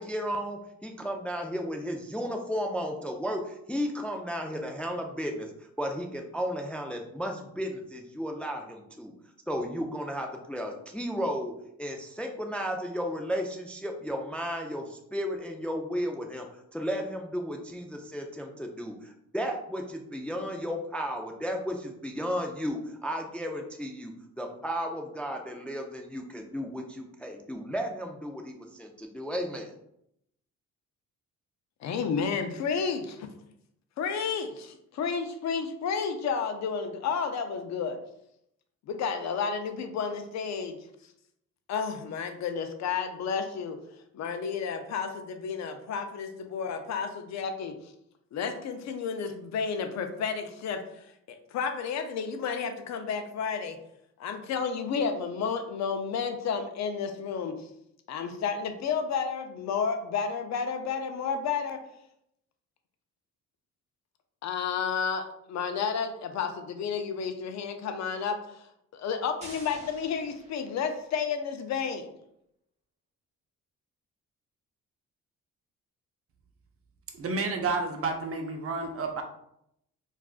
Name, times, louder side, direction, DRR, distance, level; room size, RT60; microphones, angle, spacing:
voice 1, 0.0-5.5 5.8-9.1 9.5-11.5 11.8-16.5 16.7-29.7, equal, 5° left, 3 dB, 0.3 m, -34 dB
voice 2, 31.8-33.3 34.0-38.0 38.9-40.8 41.7-43.8 44.1-47.8 48.3-51.1 51.5-53.8 54.2-57.7 58.1-61.8 64.4-68.7 68.9-72.1, left 6 dB, 65° left, 7 dB, 0.5 m, -31 dB
sound 1, 69.4-71.2, right 1 dB, 20° right, 0.9 m, -49 dB
voice 3, 77.2-79.2, right 3 dB, 50° right, 4 dB, 0.6 m, -30 dB
3.5 x 2.5 x 2.4 m, 0.75 s
cardioid pair, 90°, 30 cm